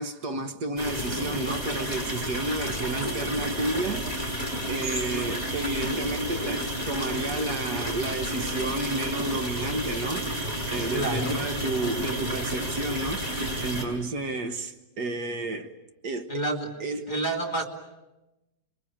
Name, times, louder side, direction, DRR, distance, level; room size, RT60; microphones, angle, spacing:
voice 1, 0.0-4.4 4.7-15.8 16.0-16.3 16.8-17.1, right 2 dB, 70° right, 1.9 m, -31 dB
sound 1, 0.8-13.8, equal, 20° right, 5.6 m, -31 dB
voice 2, 10.9-11.3 16.3-16.7 17.1-17.6, right 2 dB, 25° left, 3.1 m, -28 dB
29.5 x 23.0 x 8.8 m
omnidirectional pair, 1.8 m